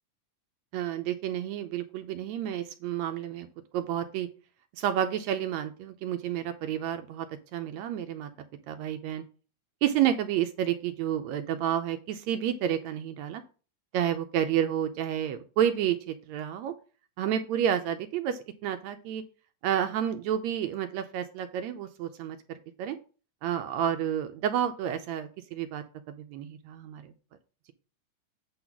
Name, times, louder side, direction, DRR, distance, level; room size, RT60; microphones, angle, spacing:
voice 1, 0.7-3.5 3.7-4.3 4.8-7.3 7.5-8.3 8.7-9.2 9.8-13.4 13.9-16.7 17.2-19.2 19.6-23.0 23.4-25.8 26.2-27.1, right 10 dB, 80° right, 8 dB, 1.6 m, -30 dB
8.5 x 3.9 x 5.8 m, 0.37 s
omnidirectional pair, 3.7 m